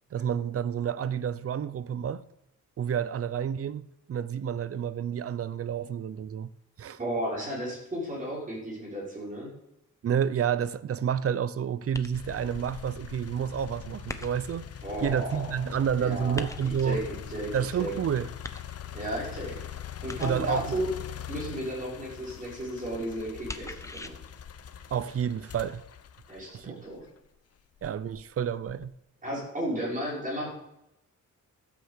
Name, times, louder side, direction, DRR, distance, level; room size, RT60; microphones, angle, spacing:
voice 1, 0.1-2.2 2.8-6.5 6.8-7.0 10.0-14.7 15.0-17.0 17.5-18.3 20.2-20.8 24.9-25.8 26.5-26.8 27.8-28.9, right 8 dB, 50° right, 0.6 m, -29 dB
voice 2, 7.0-9.5 14.8-15.4 16.0-16.5 16.8-17.9 18.9-19.6 20.0-20.9 21.3-24.2 26.3-27.0 29.2-30.5, equal, 25° right, 5.4 m, -34 dB
sound 1, 11.9-12.5 14.1-14.7 16.3-17.0 18.4-19.1 20.1-20.6 23.5-24.1, left 2 dB, 10° left, 0.7 m, -40 dB
sound 2, 12.1-27.2 27.8-29.0, left 9 dB, 50° left, 0.8 m, -42 dB
13.5 x 8.6 x 7.3 m
wide cardioid pair, 160°, 31 cm